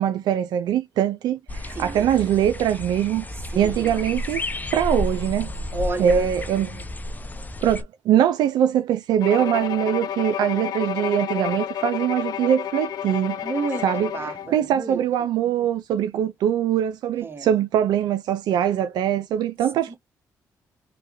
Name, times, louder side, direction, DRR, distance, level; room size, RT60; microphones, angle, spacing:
voice 1, 0.0-3.2 3.6-4.4 4.7-5.5 6.0-6.8 7.6-13.4 13.8-14.1 14.5-19.9, right 10 dB, 75° right, 0.4 m, -22 dB
birds forest lake atitlan guatemala arka, 1.5-7.8, left 1 dB, 25° left, 0.7 m, -31 dB
voice 2, 1.7-2.1 3.5-4.0 5.7-6.3 13.4-15.0 17.2-17.5 19.9-20.0, right 3 dB, 30° right, 1.2 m, -31 dB
Bowed string instrument, 9.2-14.6, left 10 dB, 65° left, 0.4 m, -30 dB
3.3 x 2.2 x 3.0 m
supercardioid pair, 55°, 7 cm